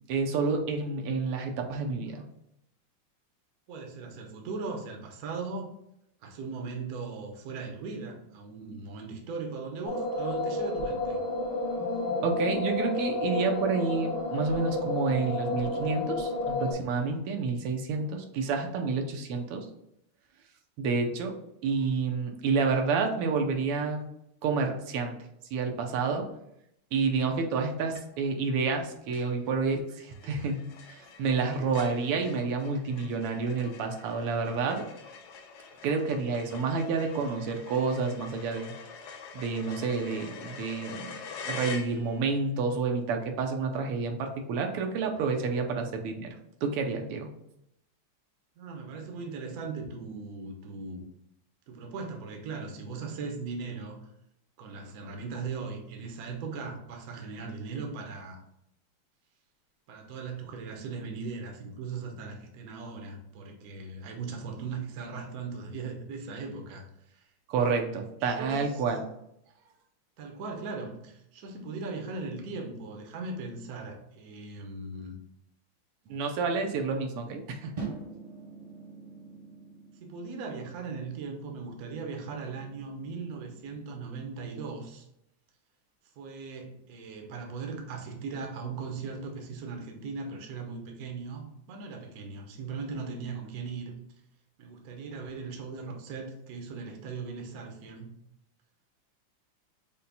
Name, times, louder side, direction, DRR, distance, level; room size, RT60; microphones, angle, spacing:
voice 1, 0.1-2.2 12.2-19.7 20.8-21.4 21.6-24.0 24.4-25.2 25.5-26.3 26.9-30.6 30.9-34.8 35.8-38.7 39.3-41.2 41.4-47.3 67.5-69.1 76.1-77.9, right 4 dB, 90° right, 4 dB, 1.6 m, -29 dB
voice 2, 3.7-5.7 6.2-11.2 48.6-51.1 51.7-54.1 54.6-58.4 59.9-67.3 67.6-67.8 68.2-68.8 70.2-75.2 80.0-85.1 86.2-94.0 94.6-98.1, right 4 dB, 60° right, 2 dB, 1.0 m, -38 dB
sound 1, 9.9-16.7, left 2 dB, 60° left, 1.4 m, -31 dB
sound 2, 27.9-28.4 28.7-28.8 29.1-42.4, left 5 dB, 90° left, 0.8 m, -45 dB
sound 3, 77.8-84.0, right 4 dB, 35° right, 0.8 m, -45 dB
5.7 x 2.2 x 3.9 m, 0.79 s
omnidirectional pair, 2.4 m